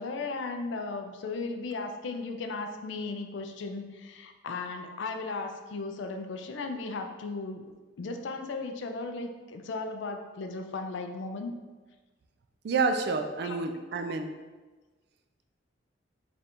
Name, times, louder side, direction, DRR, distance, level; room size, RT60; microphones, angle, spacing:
voice 1, 0.0-7.6 8.0-11.5 13.4-13.6, left 3 dB, 70° left, 6 dB, 0.4 m, -36 dB
voice 2, 12.6-14.3, right 4 dB, 55° right, 6 dB, 0.3 m, -29 dB
3.3 x 2.5 x 4.3 m, 1.3 s
head